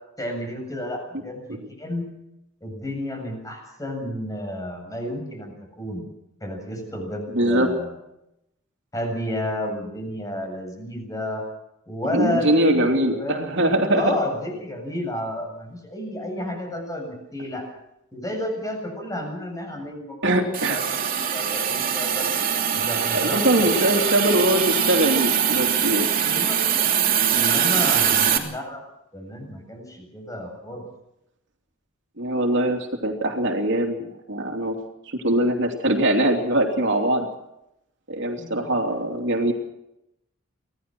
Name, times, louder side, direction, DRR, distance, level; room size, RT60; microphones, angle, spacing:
voice 1, 0.2-2.1 2.6-6.0 6.4-8.0 8.9-11.5 11.9-13.5 13.9-17.7 18.1-22.3 22.8-23.6 23.9-24.0 26.2-26.6 27.3-28.8 29.1-30.8 38.4-38.7, left 1 dB, 15° left, 4 dB, 7.4 m, -31 dB
voice 2, 7.3-7.7 12.1-14.2 20.2-20.8 23.1-26.1 32.2-34.8 35.1-37.3 38.1-39.5, right 1 dB, 60° right, 3 dB, 3.0 m, -22 dB
Hiss, 20.5-28.4, right 8 dB, 45° right, 2.9 m, -22 dB
25.0 x 17.5 x 6.2 m, 0.84 s
head